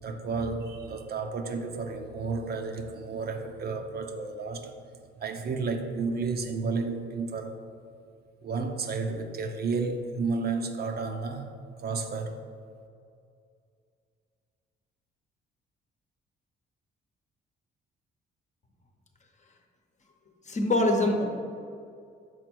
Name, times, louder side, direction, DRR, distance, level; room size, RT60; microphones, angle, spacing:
voice 1, 0.0-4.8 5.2-7.6 8.4-11.5 11.8-12.4, right 4 dB, 55° right, 5 dB, 0.6 m, -32 dB
voice 2, 20.5-21.3, left 1 dB, 35° left, 3 dB, 0.9 m, -24 dB
6.3 x 4.3 x 4.6 m, 2.4 s
cardioid pair, 90°, 20 cm